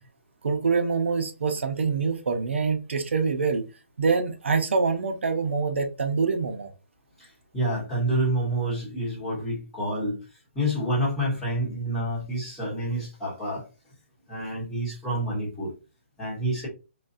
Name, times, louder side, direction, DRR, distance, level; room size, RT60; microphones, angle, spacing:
voice 1, 0.4-3.6 4.0-6.7, right 5 dB, 65° right, 0.7 m, -25 dB
voice 2, 7.2-10.2 10.5-13.6 14.3-15.7 16.2-16.7, right 1 dB, 5° left, 1.2 m, -28 dB
4.0 x 2.4 x 2.5 m
hypercardioid pair, 180°, 7 cm